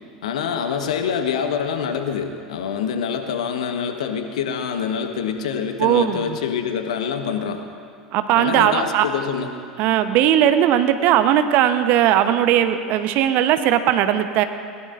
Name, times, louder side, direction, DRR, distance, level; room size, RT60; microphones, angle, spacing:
voice 1, 0.2-7.6 8.4-9.5, left 7 dB, 70° left, 6 dB, 1.2 m, -25 dB
voice 2, 5.8-6.4 8.1-9.1 9.8-14.4, right 11 dB, 50° right, 10 dB, 0.9 m, -18 dB
21.0 x 19.0 x 2.6 m, 2.3 s
figure-of-eight pair, 75°, 4 cm